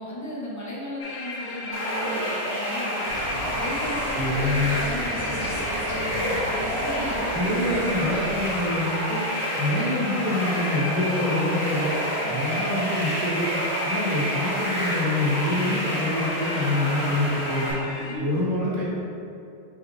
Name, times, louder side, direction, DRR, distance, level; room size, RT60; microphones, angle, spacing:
voice 1, 0.0-3.1 3.5-7.2 12.2-12.4 17.9-18.3, equal, 15° left, -7 dB, 0.8 m, -35 dB
sound 1, 1.0-18.2, left 2 dB, 75° left, 0.8 m, -35 dB
sound 2, 1.7-17.7, equal, 20° right, 0.9 m, -29 dB
Insect, 3.0-8.6, equal, 80° right, 1.8 m, -35 dB
voice 2, 4.1-4.7 7.3-9.3 9.5-11.9 12.3-13.4 13.8-17.7 18.2-18.8, left 1 dB, 50° right, -7 dB, 1.1 m, -26 dB
5.5 x 2.9 x 3.1 m, 2.6 s
omnidirectional pair, 1.2 m